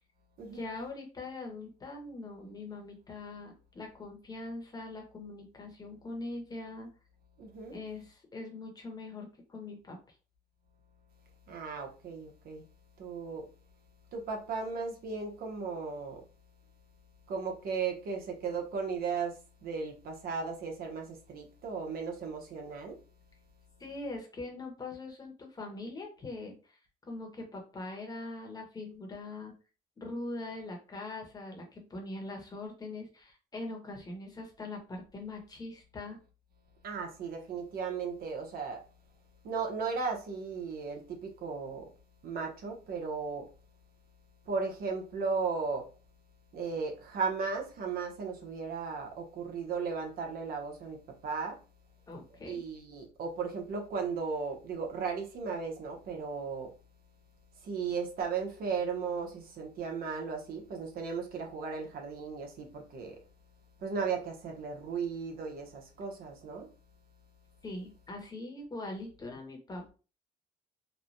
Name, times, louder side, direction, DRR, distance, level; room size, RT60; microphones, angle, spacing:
voice 1, 0.5-6.9 7.7-10.1 23.8-26.8 27.1-29.5 30.0-36.2 52.1-52.6 67.6-69.9, left 2 dB, 25° left, 1.0 m, -42 dB
voice 2, 7.4-7.8 11.5-12.6 13.0-13.5 14.1-16.2 17.3-23.0 36.8-38.8 39.4-41.9 42.2-43.5 44.5-45.9 46.5-51.6 52.4-56.7 57.6-63.2 63.8-66.7, right 5 dB, 60° right, 0.9 m, -36 dB
3.2 x 2.1 x 2.6 m
cardioid pair, 110°, 17 cm